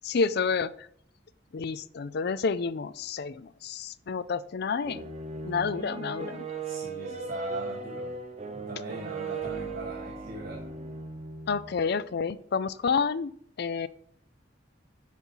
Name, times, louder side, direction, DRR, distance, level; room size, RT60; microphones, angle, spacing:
voice 1, 0.0-0.9 1.5-5.1 5.4-6.6 11.5-13.3 13.6-13.9, left 5 dB, 55° left, 16 dB, 0.4 m, -29 dB
sound 1, 4.8-11.8, right 4 dB, 35° right, 0.8 m, -37 dB
voice 2, 6.6-8.2 8.5-10.7, right 1 dB, 50° right, -2 dB, 1.4 m, -39 dB
10.5 x 4.2 x 5.6 m, 0.65 s
head